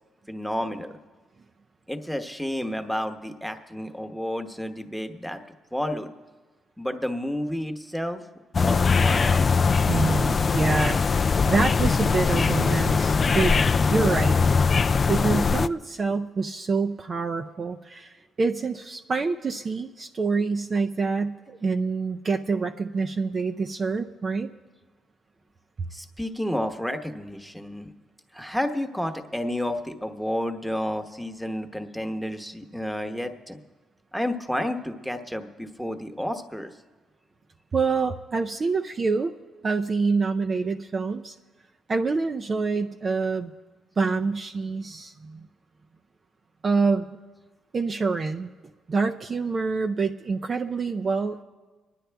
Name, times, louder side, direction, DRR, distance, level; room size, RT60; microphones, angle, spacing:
voice 1, 0.3-0.9 1.9-5.4 5.7-6.1 6.8-8.2 8.5-9.4 25.9-27.9 28.3-33.6 34.1-36.7, left 1 dB, ahead, 7 dB, 1.1 m, -31 dB
sound 1, 8.5-15.7, left 5 dB, 40° left, 0.3 m, -21 dB
voice 2, 9.9-13.5 13.9-14.6 15.1-24.5 37.7-39.3 39.6-41.4 41.9-43.5 44.0-45.5 46.6-47.2 47.7-48.5 48.9-51.4, right 4 dB, 40° right, 4 dB, 0.5 m, -26 dB
24.5 x 10.0 x 3.5 m, 1.3 s
cardioid pair, 90°, 0 cm